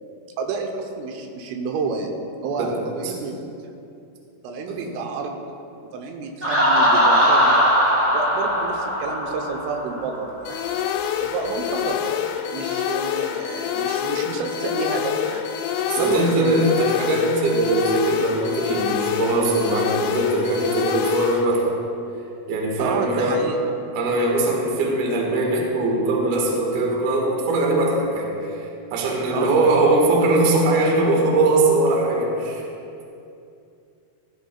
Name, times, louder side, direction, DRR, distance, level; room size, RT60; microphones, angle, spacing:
voice 1, 0.4-2.1 2.4-3.4 4.4-5.4 5.9-7.6 8.1-10.9 11.2-12.0 12.5-15.4 16.0-16.6 22.8-23.6 29.3-29.5, right 4 dB, 90° right, 2 dB, 3.5 m, -29 dB
Laughter, 6.4-10.1, equal, 20° right, 1.1 m, -19 dB
sound 1, 10.5-21.5, left 9 dB, 85° left, 2.5 m, -26 dB
voice 2, 15.9-21.8 22.5-23.4 23.9-32.6, right 2 dB, 55° right, -2 dB, 2.3 m, -21 dB
14.5 x 13.5 x 2.3 m, 2.6 s
omnidirectional pair, 5.6 m